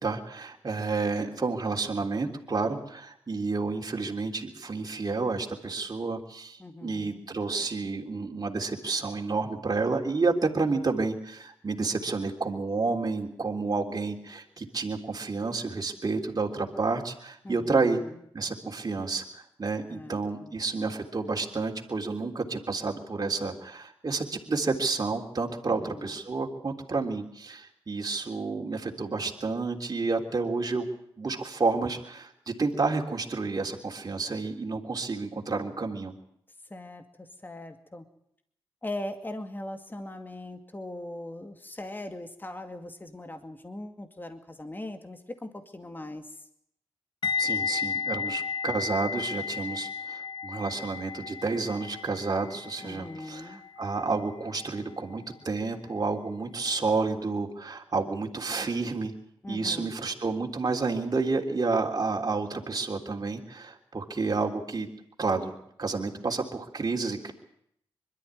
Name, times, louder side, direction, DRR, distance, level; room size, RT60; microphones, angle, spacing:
voice 1, 0.0-18.0 18.3-30.9 31.2-36.1 47.4-59.1 59.5-64.9 65.2-67.3, right 3 dB, 40° right, 1 dB, 3.5 m, -30 dB
voice 2, 6.6-7.2 17.4-18.2 19.9-20.6 25.7-26.2 36.7-38.1 38.8-46.4 52.8-53.6 59.4-59.9, left 1 dB, 20° left, 6 dB, 2.3 m, -40 dB
sound 1, 47.2-56.2 56.4-56.7, left 6 dB, 50° left, 1.0 m, -34 dB
22.0 x 13.0 x 9.9 m, 0.73 s
cardioid pair, 55°, 10 cm